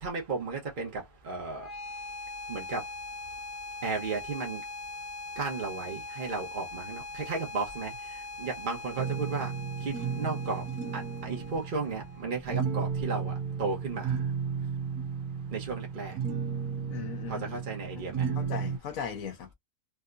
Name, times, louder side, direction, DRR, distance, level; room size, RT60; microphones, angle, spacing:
voice 1, 0.0-1.7 2.5-2.8 3.8-4.6 5.4-7.9 8.4-9.5 9.8-10.6 10.9-14.2 15.5-16.2 17.3-18.3, right 4 dB, 40° right, 1.0 m, -34 dB
sound 1, 1.5-12.5, left 3 dB, 45° left, 1.3 m, -42 dB
sound 2, 9.0-18.8, right 6 dB, 85° right, 1.2 m, -33 dB
voice 2, 16.9-17.6 18.0-18.1 18.3-19.5, left 7 dB, 70° left, 1.2 m, -38 dB
3.3 x 2.7 x 2.4 m
omnidirectional pair, 1.6 m